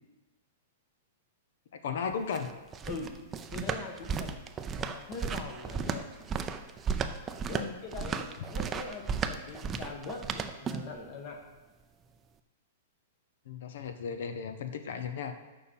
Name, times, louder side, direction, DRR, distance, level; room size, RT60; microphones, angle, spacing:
voice 1, 1.8-2.5 7.6-7.7 13.5-15.3, left 6 dB, 70° left, 8 dB, 0.7 m, -35 dB
sound 1, 2.1-11.0, right 6 dB, 20° right, 0.4 m, -35 dB
voice 2, 2.9-3.2 3.5-4.4 4.8-6.1 7.3-11.4, left 3 dB, 40° left, 3 dB, 1.5 m, -42 dB
6.8 x 5.5 x 7.0 m, 1.1 s
hypercardioid pair, 145°, 0 cm